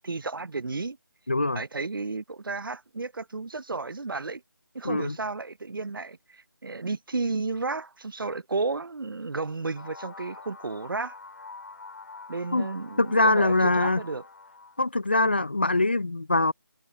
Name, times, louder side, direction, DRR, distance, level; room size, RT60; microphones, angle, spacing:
voice 1, 0.0-1.0 1.5-4.4 4.7-11.2 12.3-14.2 15.2-15.5, right 3 dB, 70° right, 0.7 m, -32 dB
voice 2, 1.3-1.6 4.8-5.2 12.5-12.7 13.0-14.0 14.8-16.5, left 2 dB, 30° left, 0.4 m, -23 dB
sound 1, 9.8-14.9, left 3 dB, 50° left, 5.4 m, -45 dB
figure-of-eight pair, 170°, 12 cm